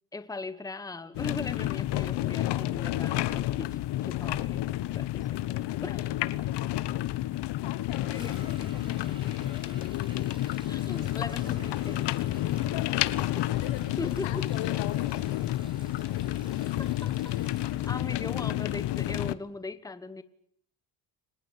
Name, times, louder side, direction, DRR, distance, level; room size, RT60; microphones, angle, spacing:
voice 1, 0.1-6.1 8.1-8.9 10.7-12.1 13.4-13.5 14.0-14.5 16.8-17.3 17.9-20.2, left 3 dB, 10° left, 13 dB, 1.2 m, -40 dB
sound 1, 1.1-19.3, left 15 dB, 65° left, 1.2 m, -30 dB
voice 2, 5.7-6.0 7.6-10.4 12.7-13.0 13.4-15.4, left 12 dB, 90° left, 10 dB, 2.2 m, -41 dB
sound 2, 7.9-10.0 10.8-14.0 14.6-18.1, left 3 dB, 30° left, 6.1 m, -50 dB
Sink (filling or washing), 7.9-17.9, right 1 dB, 10° right, 7.0 m, -53 dB
25.0 x 20.0 x 8.6 m, 0.66 s
cardioid pair, 135°, 44 cm